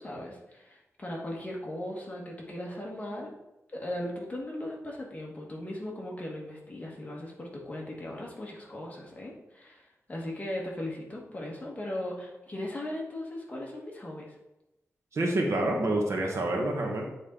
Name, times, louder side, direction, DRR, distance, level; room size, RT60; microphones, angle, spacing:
voice 1, 0.0-3.3 3.7-14.4, left 1 dB, 30° left, -2 dB, 1.4 m, -38 dB
voice 2, 15.1-17.0, right 1 dB, 65° right, 1 dB, 1.3 m, -27 dB
8.5 x 4.2 x 3.8 m, 0.95 s
wide cardioid pair, 165°, 5 cm